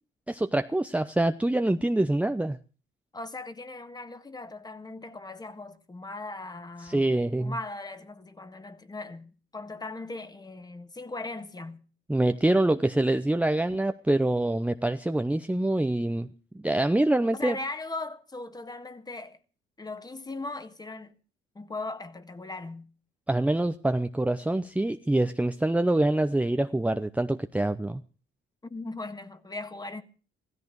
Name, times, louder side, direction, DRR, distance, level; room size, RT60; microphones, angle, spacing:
voice 1, 0.3-2.6 6.8-7.5 12.1-16.3 16.5-17.5 23.3-28.0, right 1 dB, 5° right, 0.8 m, -25 dB
voice 2, 3.1-7.1 7.4-11.8 17.3-19.4 19.8-21.2 21.6-22.9 28.6-30.0, left 2 dB, 20° left, 1.7 m, -39 dB
16.0 x 14.0 x 6.4 m
cardioid pair, 90°, 20 cm